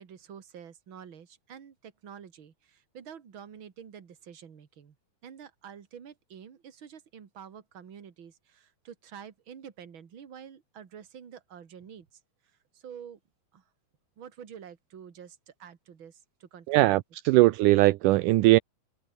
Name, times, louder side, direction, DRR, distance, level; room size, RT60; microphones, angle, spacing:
voice 1, 0.0-5.0 5.2-12.2 12.7-13.2 13.5-13.6 14.2-17.0, right 8 dB, 40° right, 2.4 m, -48 dB
voice 2, 16.7-18.6, right 19 dB, 80° right, 1.9 m, -20 dB
omnidirectional pair, 4.2 m